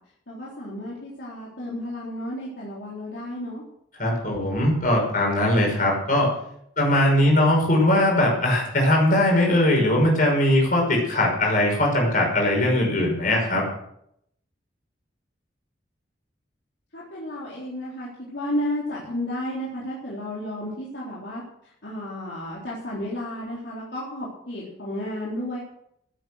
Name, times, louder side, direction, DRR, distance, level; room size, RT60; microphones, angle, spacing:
voice 1, 0.3-3.6 16.9-25.6, left 1 dB, 70° left, -6 dB, 3.9 m, -32 dB
voice 2, 4.0-6.3 6.8-13.6, left 1 dB, 45° left, 0 dB, 5.9 m, -20 dB
16.0 x 9.3 x 6.5 m, 0.74 s
head